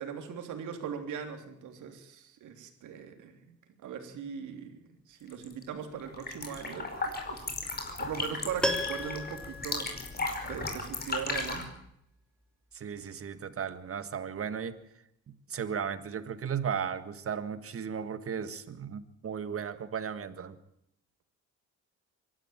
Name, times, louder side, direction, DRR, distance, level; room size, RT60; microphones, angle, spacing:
voice 1, 0.0-3.6 3.8-4.8 5.1-7.5 8.0-9.9 10.4-11.7, right 7 dB, 80° right, 6 dB, 3.4 m, -40 dB
sound 1, 5.3-5.6 6.0-11.6, left 3 dB, 30° left, 5.2 m, -36 dB
Piano, 8.6-10.7 11.0-11.1, left 1 dB, 5° left, 3.3 m, -34 dB
voice 2, 12.7-14.8 15.3-20.6, right 7 dB, 50° right, 12 dB, 1.8 m, -35 dB
24.0 x 12.5 x 9.0 m, 0.77 s
cardioid pair, 90°, 30 cm